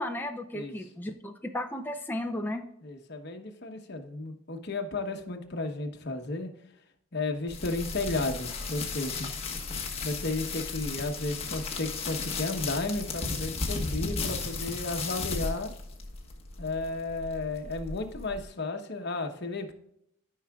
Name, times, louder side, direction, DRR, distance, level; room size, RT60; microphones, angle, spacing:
voice 1, 0.0-2.6, left 1 dB, 10° left, 4 dB, 0.5 m, -34 dB
voice 2, 2.8-6.5 7.1-9.3 10.0-15.7 16.6-19.7, left 2 dB, 55° left, 5 dB, 1.1 m, -33 dB
sound 1, 7.5-18.5, left 4 dB, 30° left, 1.3 m, -35 dB
13.0 x 5.7 x 2.4 m, 0.73 s
head